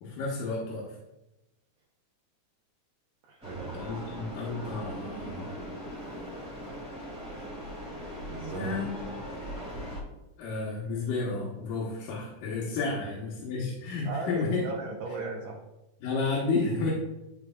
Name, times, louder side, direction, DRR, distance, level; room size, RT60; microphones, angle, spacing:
voice 1, 0.0-1.0 3.7-5.5 8.5-9.0 10.4-14.6 16.0-16.9, left 3 dB, 90° left, -5 dB, 2.7 m, -31 dB
voice 2, 3.2-3.7 8.3-8.8 14.0-15.6, right 3 dB, 70° right, -3 dB, 1.7 m, -37 dB
sound 1, 3.4-10.0, equal, 5° right, 1.4 m, -39 dB
11.0 x 4.6 x 2.3 m, 0.93 s
omnidirectional pair, 3.6 m